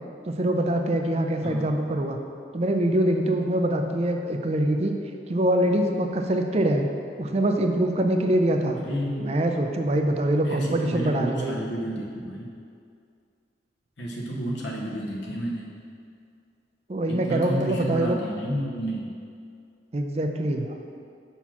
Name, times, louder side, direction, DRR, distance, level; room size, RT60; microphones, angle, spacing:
voice 1, 0.2-2.2 2.5-4.9 5.3-6.9 7.2-8.8 9.2-11.6 16.9-18.2 19.9-20.7, right 1 dB, 30° right, 4 dB, 0.4 m, -24 dB
voice 2, 8.8-9.4 10.4-12.5 14.0-15.8 17.1-19.1, right 1 dB, 65° left, -2 dB, 0.9 m, -31 dB
6.0 x 4.1 x 5.8 m, 2.4 s
head